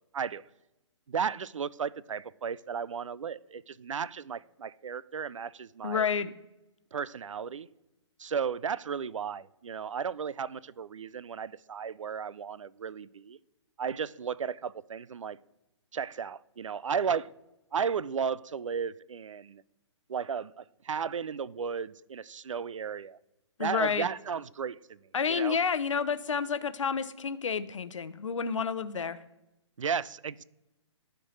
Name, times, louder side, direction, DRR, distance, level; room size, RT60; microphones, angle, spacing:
voice 1, 1.1-6.1 6.9-7.7 8.2-13.4 13.8-15.4 15.9-17.3 17.7-19.6 20.1-23.2 23.6-25.0 25.3-25.6 29.8-30.4, right 6 dB, 80° right, 20 dB, 0.4 m, -34 dB
voice 2, 5.8-6.3 23.6-24.1 25.1-29.2, left 6 dB, 75° left, 13 dB, 0.7 m, -30 dB
13.5 x 4.5 x 3.2 m, 0.95 s
figure-of-eight pair, 135°, 16 cm